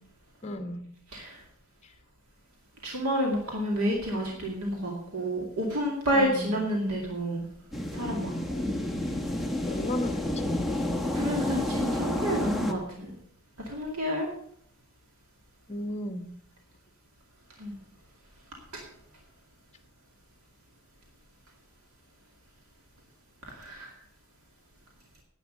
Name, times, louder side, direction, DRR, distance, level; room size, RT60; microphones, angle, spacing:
voice 1, 0.4-0.8 6.1-6.6 9.6-10.5 15.7-16.3, left 1 dB, 30° left, 7 dB, 1.4 m, -34 dB
voice 2, 1.1-1.4 2.8-7.4 7.9-8.8 11.1-13.1 13.7-14.3 17.6-17.7 18.7-18.8 23.4-23.9, equal, 75° right, 0 dB, 2.4 m, -30 dB
sound 1, 7.7-12.7, left 1 dB, ahead, 1.2 m, -30 dB
10.5 x 9.0 x 6.5 m, 0.66 s
head